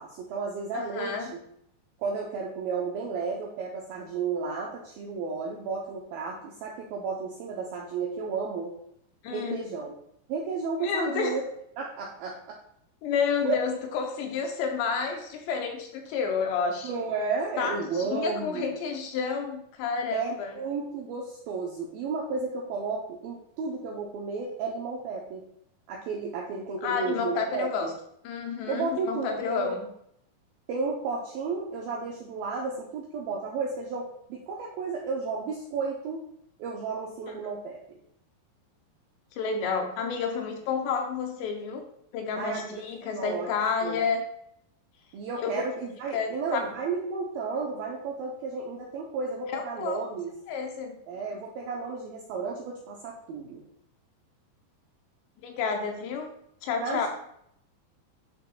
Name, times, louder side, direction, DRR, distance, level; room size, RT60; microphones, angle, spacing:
voice 1, 0.0-1.4 2.0-8.8 9.3-9.9 10.3-11.4 11.8-12.6 13.4-13.6 16.8-18.8 20.1-25.4 25.9-27.9 28.7-29.8 30.7-36.2 36.6-37.8 42.3-43.5 43.8-44.0 45.1-50.3 51.1-53.6 56.8-57.1, right 4 dB, 85° right, -2 dB, 2.1 m, -33 dB
voice 2, 0.7-1.3 9.2-9.6 10.8-11.4 13.0-16.9 17.6-20.5 26.8-27.9 28.2-29.8 37.3-37.4 39.4-41.8 42.1-44.3 45.4-45.6 46.1-46.6 49.5-50.0 50.5-51.0 55.4-56.3 56.6-57.1, left 5 dB, 80° left, 3 dB, 2.8 m, -30 dB
10.5 x 5.9 x 2.4 m, 0.72 s
omnidirectional pair, 5.2 m